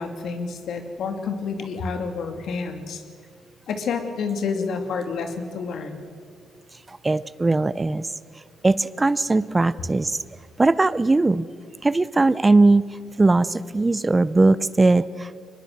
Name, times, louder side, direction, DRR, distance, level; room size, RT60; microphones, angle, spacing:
voice 1, 0.0-3.0 3.7-6.0, left 5 dB, 70° left, 7 dB, 2.6 m, -29 dB
voice 2, 6.9-8.1 8.6-10.2 10.6-11.5 11.8-12.8 13.2-15.4, right 2 dB, 20° right, 18 dB, 0.5 m, -19 dB
24.0 x 20.0 x 7.9 m, 2.1 s
cardioid pair, 90°, 0 cm